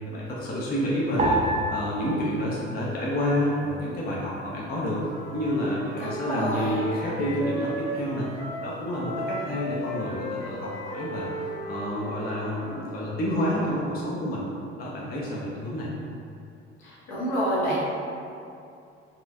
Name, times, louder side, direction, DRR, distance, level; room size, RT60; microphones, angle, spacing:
voice 1, 0.0-1.4 1.7-5.0 5.3-8.3 8.6-11.3 11.7-14.4 14.8-15.9, equal, 30° left, -5 dB, 0.7 m, -29 dB
sound 1, 1.2-3.7 4.0-4.9 5.5-5.9, right 1 dB, 20° right, 0.6 m, -30 dB
Wind instrument woodwind instrument, 4.9-8.7 8.9-12.9, right 1 dB, 85° left, 1.3 m, -36 dB
voice 2, 6.0-6.7 16.8-17.8, equal, 65° left, -7 dB, 1.1 m, -28 dB
4.2 x 2.4 x 2.5 m, 2.5 s
figure-of-eight pair, 55°, 33 cm